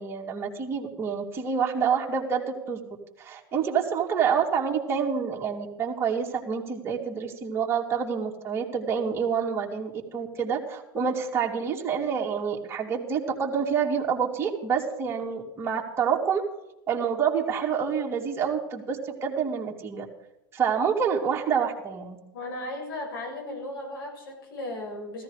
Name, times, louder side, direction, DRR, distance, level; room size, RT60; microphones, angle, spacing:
voice 1, 0.0-2.8 3.2-16.4 16.9-20.1 20.5-22.2, right 6 dB, 20° right, -2 dB, 2.8 m, -27 dB
voice 2, 22.3-25.2, left 1 dB, 85° left, 1 dB, 6.9 m, -36 dB
15.0 x 14.0 x 5.0 m, 0.90 s
supercardioid pair, 120°, 12 cm